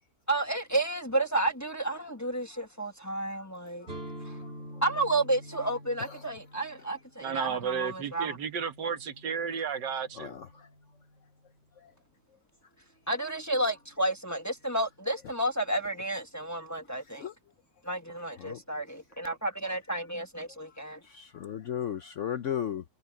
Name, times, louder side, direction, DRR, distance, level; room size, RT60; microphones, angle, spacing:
voice 1, 0.3-3.9 4.3-4.4 4.8-8.4 13.1-17.3 17.8-21.0, right 2 dB, 10° left, 1.1 m, -31 dB
sound 1, 3.9-11.6, right 1 dB, 35° right, 2.2 m, -47 dB
voice 2, 7.2-10.4, right 6 dB, 85° right, 2.0 m, -33 dB
voice 3, 10.2-10.7 11.8-11.9 17.2-17.3 18.4-18.6 21.0-22.8, left 9 dB, 60° left, 0.8 m, -35 dB
omnidirectional pair, 1.8 m